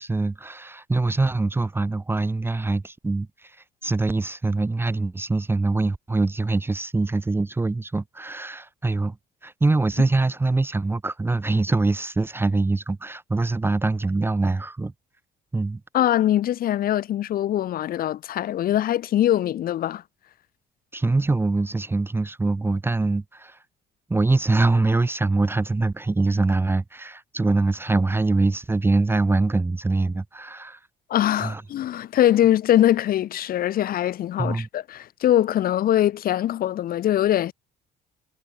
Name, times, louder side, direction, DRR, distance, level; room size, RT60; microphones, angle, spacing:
voice 1, 0.0-3.6 3.8-9.2 9.4-14.9 15.5-15.8 20.9-23.6 24.1-30.8 31.4-31.6 34.4-34.7, right 3 dB, 15° right, 0.9 m, -23 dB
voice 2, 15.9-20.0 31.1-37.5, left 12 dB, 60° left, 1.6 m, -22 dB
cardioid pair, 110°, 17 cm